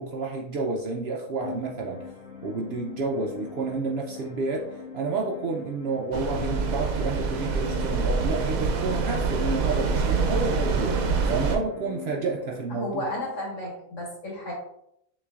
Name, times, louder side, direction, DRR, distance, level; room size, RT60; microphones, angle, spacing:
voice 1, 0.0-2.0 2.4-13.1, right 3 dB, 60° right, 0 dB, 0.7 m, -30 dB
sound 1, 1.4-13.3, left 6 dB, 85° left, 1.6 m, -42 dB
sound 2, 6.1-11.6, right 4 dB, 85° right, 1.1 m, -26 dB
voice 2, 12.7-14.5, left 1 dB, 65° left, -3 dB, 1.8 m, -33 dB
6.1 x 3.2 x 2.4 m, 0.76 s
omnidirectional pair, 1.4 m